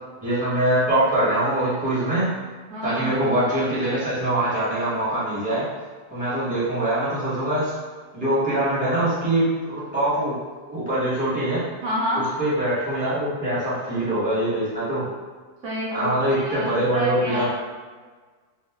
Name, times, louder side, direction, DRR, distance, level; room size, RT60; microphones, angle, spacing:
voice 1, 0.2-2.3 2.8-5.6 6.1-7.7 8.1-10.3 10.7-11.6 12.4-15.1 15.9-17.5, right 1 dB, 5° right, -11 dB, 1.2 m, -23 dB
voice 2, 2.7-3.2 11.8-12.2 15.6-17.5, equal, 55° right, -5 dB, 1.0 m, -28 dB
2.5 x 2.5 x 3.6 m, 1.4 s
omnidirectional pair, 1.7 m